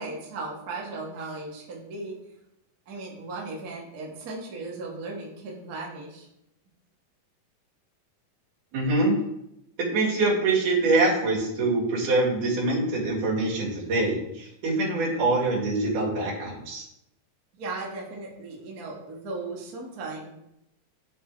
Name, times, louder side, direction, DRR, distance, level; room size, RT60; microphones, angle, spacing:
voice 1, 0.0-2.2 2.9-6.3 17.5-20.3, right 3 dB, 40° right, -3 dB, 1.3 m, -36 dB
voice 2, 8.7-9.2 9.8-16.8, right 2 dB, 80° right, -4 dB, 3.6 m, -24 dB
10.0 x 3.6 x 4.5 m, 0.82 s
omnidirectional pair, 3.6 m